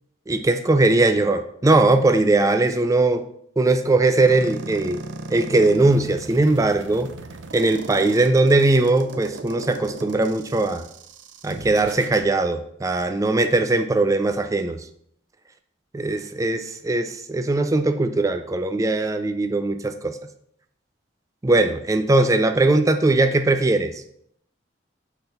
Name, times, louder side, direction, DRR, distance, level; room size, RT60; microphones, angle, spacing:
voice 1, 0.3-3.2 3.6-5.0 5.3-7.1 7.5-10.8 11.4-14.8 15.9-20.1 21.4-23.9, right 2 dB, 20° right, 8 dB, 0.4 m, -20 dB
sound 1, 4.3-12.3, right 3 dB, 80° right, 0.7 m, -37 dB
6.7 x 4.0 x 5.6 m, 0.70 s
head